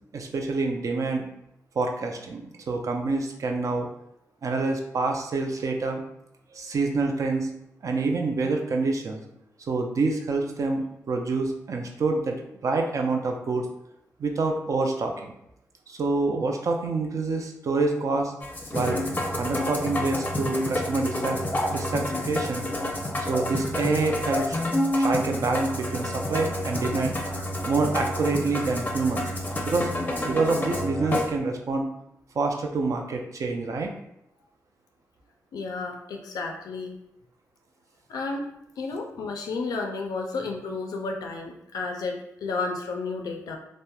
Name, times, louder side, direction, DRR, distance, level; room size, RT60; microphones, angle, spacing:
voice 1, 0.1-1.3 1.8-3.9 4.4-6.0 6.5-7.5 7.8-9.2 9.7-12.4 12.6-13.7 14.2-15.3 15.9-18.3 18.7-19.0 19.3-21.4 21.7-22.7 23.2-24.6 25.0-27.1 27.6-29.3 29.7-29.9 30.2-31.9 32.4-33.9, right 3 dB, 60° right, 3 dB, 0.4 m, -27 dB
Musical instrument, 18.4-31.3, left 1 dB, 25° left, 0.5 m, -29 dB
voice 2, 35.5-36.9 38.1-38.5 38.8-43.6, left 3 dB, 85° left, 2 dB, 0.3 m, -32 dB
2.9 x 2.0 x 2.2 m, 0.80 s
cardioid pair, 65°, 6 cm